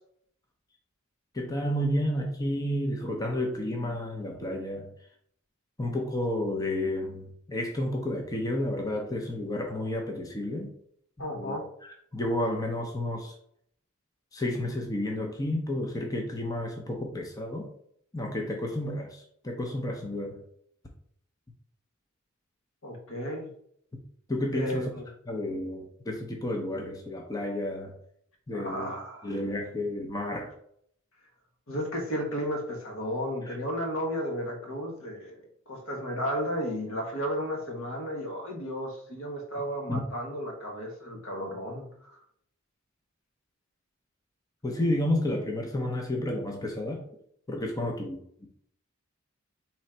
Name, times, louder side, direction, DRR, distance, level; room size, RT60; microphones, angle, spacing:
voice 1, 1.3-4.9 5.8-10.7 11.3-11.6 12.1-13.3 14.3-17.7 18.1-20.4 24.3-24.9 25.3-27.9 28.5-28.9 29.2-30.5 33.5-33.6 39.9-40.0 44.6-47.0 47.5-48.5, left 1 dB, 15° left, 1 dB, 0.6 m, -31 dB
voice 2, 11.2-11.7 22.8-23.5 24.5-25.1 28.5-29.3 31.7-42.1, equal, 75° left, 1 dB, 1.3 m, -33 dB
3.7 x 3.1 x 4.3 m, 0.67 s
head